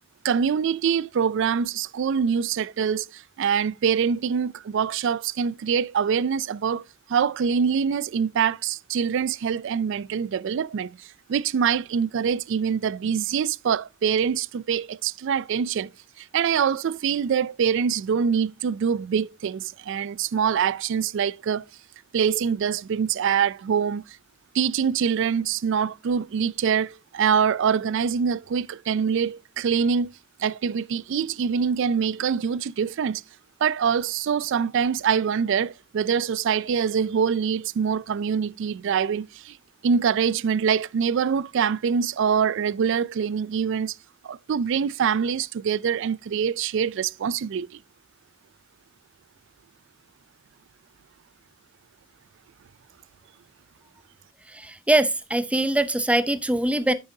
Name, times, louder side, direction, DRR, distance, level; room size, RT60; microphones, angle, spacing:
voice 1, 0.2-6.8 7.1-15.9 16.2-21.6 22.1-24.2 24.5-30.1 30.4-33.2 33.6-39.6 39.8-44.0 44.2-47.8, right 7 dB, 65° right, 0.4 m, -24 dB
voice 2, 54.5-56.9, right 1 dB, 5° right, 0.6 m, -22 dB
9.7 x 7.5 x 2.7 m
head